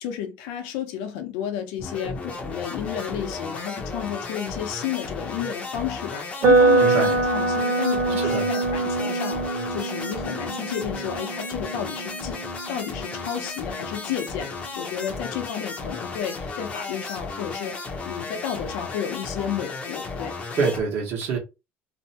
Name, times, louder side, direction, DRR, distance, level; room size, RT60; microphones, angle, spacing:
voice 1, 0.0-12.4 12.7-20.7, left 9 dB, 85° left, 0.7 m, -32 dB
sound 1, 1.8-20.8, left 4 dB, 20° left, 0.6 m, -34 dB
sound 2, 6.4-14.3, right 3 dB, 30° right, 0.9 m, -24 dB
voice 2, 6.8-7.2 8.2-8.5 20.5-21.4, right 5 dB, 45° right, 1.0 m, -25 dB
2.7 x 2.2 x 2.7 m
cardioid pair, 175°, 5 cm